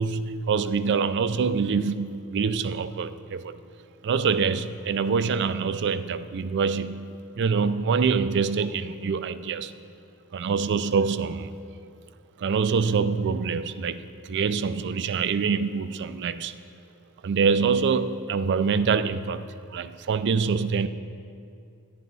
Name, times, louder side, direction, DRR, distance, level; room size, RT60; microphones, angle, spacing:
voice 1, 0.0-3.6 4.0-9.7 10.3-11.6 12.4-16.5 17.2-20.9, right 5 dB, 55° right, 12 dB, 0.4 m, -25 dB
11.0 x 11.0 x 4.0 m, 2.4 s
head